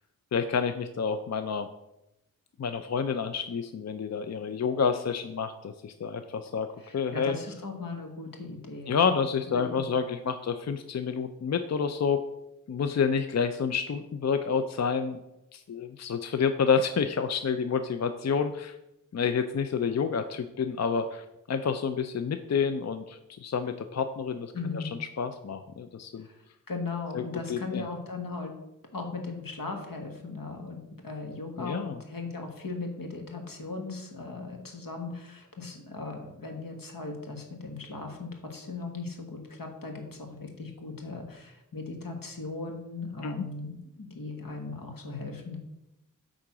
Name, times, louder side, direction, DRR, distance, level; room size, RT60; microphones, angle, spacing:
voice 1, 0.3-1.7 2.6-6.7 6.9-7.4 8.9-12.3 12.7-15.2 15.5-18.7 19.1-24.8 25.2-26.3 27.1-27.9 31.6-32.0 43.2-43.5, left 6 dB, 50° left, 9 dB, 0.5 m, -29 dB
voice 2, 6.8-9.2 9.5-9.8 24.5-24.9 26.2-28.5 28.9-45.6, left 3 dB, 80° left, 3 dB, 1.5 m, -38 dB
8.5 x 3.8 x 6.0 m, 0.90 s
wide cardioid pair, 80°, 33 cm